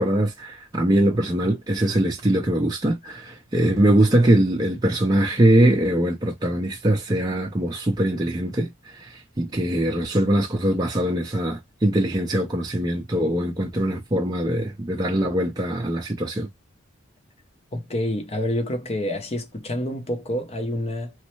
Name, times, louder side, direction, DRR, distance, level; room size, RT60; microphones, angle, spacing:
voice 1, 0.0-8.7 9.0-16.5, right 1 dB, 20° right, 0.5 m, -22 dB
voice 2, 17.7-21.1, left 1 dB, 30° left, 0.6 m, -27 dB
3.1 x 2.0 x 3.0 m
head